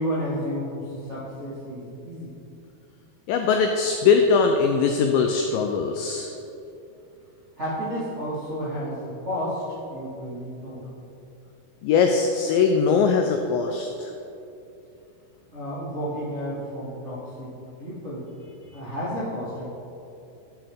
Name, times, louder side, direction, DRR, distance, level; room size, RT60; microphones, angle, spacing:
voice 1, 0.0-2.3 7.6-9.6 9.9-10.9 15.5-17.5 17.8-18.3 18.7-19.7, equal, 75° right, -11 dB, 0.6 m, -31 dB
voice 2, 3.3-6.3 11.8-14.1, left 5 dB, 90° left, 4 dB, 2.0 m, -21 dB
10.5 x 5.7 x 3.6 m, 2.8 s
omnidirectional pair, 4.5 m